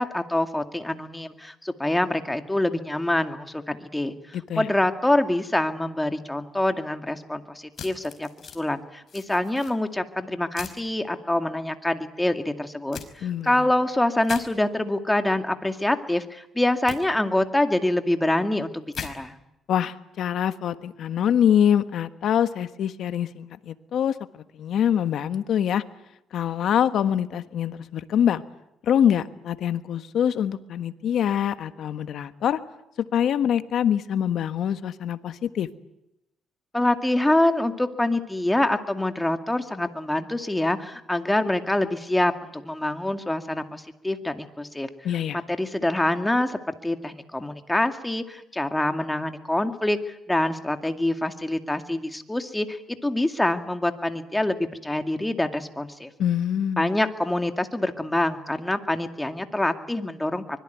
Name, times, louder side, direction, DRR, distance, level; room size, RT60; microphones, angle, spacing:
voice 1, 0.0-19.4 36.7-44.9 45.5-56.1 56.8-60.6, left 1 dB, 10° left, 7 dB, 2.3 m, -25 dB
voice 2, 4.3-4.7 13.2-13.7 19.7-24.2 24.5-25.8 26.3-28.4 28.8-32.6 33.1-35.7 45.0-45.4 56.2-56.9, left 9 dB, 70° left, 11 dB, 1.4 m, -24 dB
sound 1, 7.7-8.6 9.1-9.7 10.5-10.8 12.9-13.1 14.2-14.4 16.9-17.0 18.9-19.1, left 7 dB, 50° left, 4.9 m, -38 dB
24.5 x 22.0 x 9.4 m, 0.86 s
cardioid pair, 90°, 0 cm